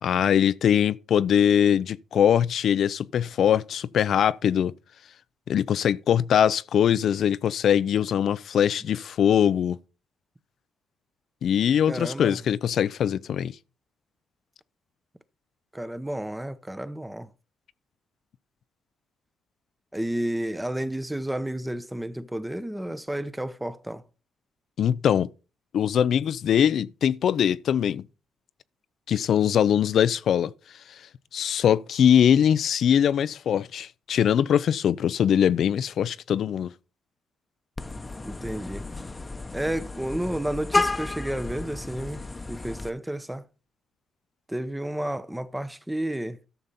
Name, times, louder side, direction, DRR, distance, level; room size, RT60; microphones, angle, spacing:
voice 1, 0.0-4.7 5.5-9.8 11.4-13.5 24.8-25.3 25.7-28.1 29.1-30.5 31.3-36.7, left 9 dB, 65° left, 0.5 m, -22 dB
voice 2, 11.9-12.4 15.7-17.3 19.9-24.0 38.2-38.9 39.5-43.4 44.5-46.4, right 1 dB, 10° right, 0.9 m, -31 dB
Vehicle horn car horn honking, 37.8-42.9, left 3 dB, 20° left, 0.9 m, -31 dB
13.0 x 6.7 x 4.2 m
cardioid pair, 90°, 0 cm